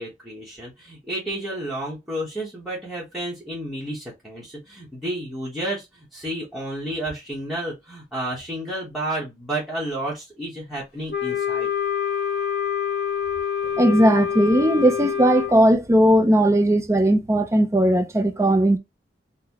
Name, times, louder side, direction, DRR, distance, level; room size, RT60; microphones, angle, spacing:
voice 1, 0.0-11.7, right 1 dB, ahead, 0.9 m, -31 dB
Wind instrument woodwind instrument, 11.1-15.6, left 8 dB, 60° left, 1.6 m, -26 dB
voice 2, 13.8-18.8, right 1 dB, 15° right, 0.4 m, -18 dB
3.9 x 2.1 x 2.8 m
head